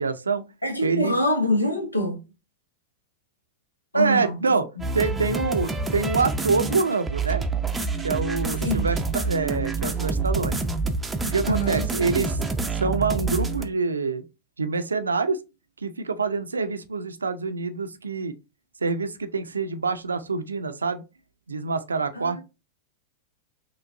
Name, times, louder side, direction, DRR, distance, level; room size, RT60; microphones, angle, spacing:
voice 1, 0.0-0.4 0.8-1.2 3.9-4.7 4.9-7.4 8.0-10.6 11.3-12.4 12.7-14.2 14.6-15.4 15.8-18.3 18.8-21.0 21.5-22.4, right 4 dB, 75° right, 0.5 m, -26 dB
voice 2, 0.6-2.2 3.9-4.4 8.6-8.9 11.5-11.9 22.1-22.4, equal, 85° left, 1.0 m, -25 dB
sound 1, 4.8-13.6, right 3 dB, 10° right, 0.6 m, -27 dB
6.0 x 2.5 x 2.6 m
figure-of-eight pair, 95°, 0 cm